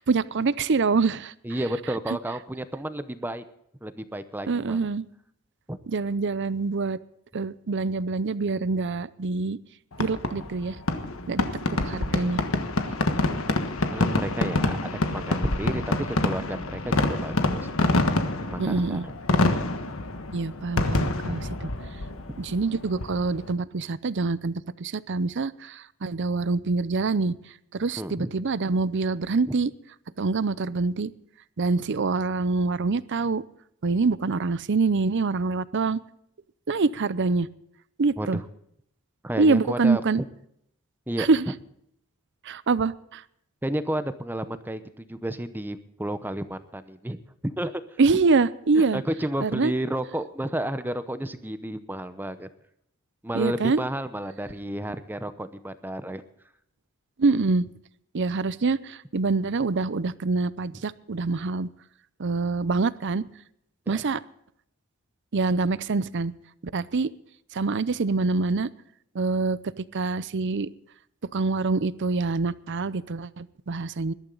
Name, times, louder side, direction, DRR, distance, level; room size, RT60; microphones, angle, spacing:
voice 1, 0.0-1.3 2.1-2.2 4.5-5.0 5.9-7.0 7.3-9.6 10.0-10.8 11.3-11.5 11.8-12.4 18.6-19.0 20.3-21.7 22.4-27.3 27.7-29.7 30.2-31.1 31.6-33.4 33.8-36.0 36.7-37.5 38.0-38.4 39.4-40.2 41.2-41.5 42.4-43.2 48.0-49.0 49.4-49.7 53.3-53.8 57.2-57.7 58.1-61.7 62.2-63.2 63.9-64.2 65.3-66.3 66.7-67.1 67.5-68.7 69.1-70.7 71.3-74.1, right 3 dB, 55° right, 18 dB, 0.6 m, -25 dB
voice 2, 1.4-3.4 3.8-4.8 5.7-5.8 13.9-17.7 18.4-19.1 22.3-22.4 28.0-28.3 38.2-38.4 39.2-40.2 41.1-41.3 43.6-47.8 48.8-52.5 53.2-56.2 63.9-64.0, right 1 dB, 10° right, 11 dB, 0.7 m, -32 dB
Fireworks, 9.9-23.5, left 2 dB, 65° left, 1.4 m, -27 dB
21.0 x 12.0 x 3.9 m, 0.72 s
head